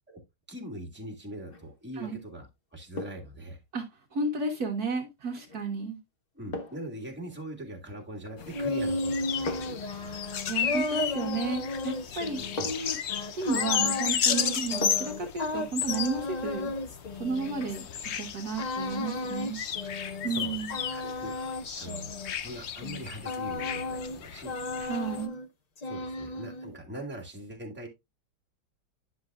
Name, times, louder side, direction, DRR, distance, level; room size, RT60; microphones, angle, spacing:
voice 1, 0.5-3.6 6.3-10.2 12.4-12.7 20.2-20.7 20.9-21.4 21.8-24.5 25.8-27.9, right 1 dB, 5° right, 0 dB, 2.0 m, -42 dB
sound 1, 1.4-1.7 3.0-3.4 5.5-5.7 6.5-7.0 8.3-8.7 9.5-9.9 11.6-11.7 12.6-13.0 14.8-15.3 15.6-15.7, left 1 dB, 35° left, 1.1 m, -38 dB
voice 2, 4.1-6.0 10.5-13.0 13.3-16.7 17.2-17.9 18.1-19.6 20.2-20.7 24.8-25.3, right 3 dB, 60° right, 2 dB, 1.6 m, -32 dB
sound 2, 8.3-18.1 18.6-20.4 20.7-24.2 24.4-25.5 25.8-26.7, left 2 dB, 85° left, 0.3 m, -34 dB
sound 3, 8.4-25.3, left 8 dB, 60° left, 0.7 m, -34 dB
10.0 x 6.4 x 2.4 m, 0.21 s
omnidirectional pair, 1.9 m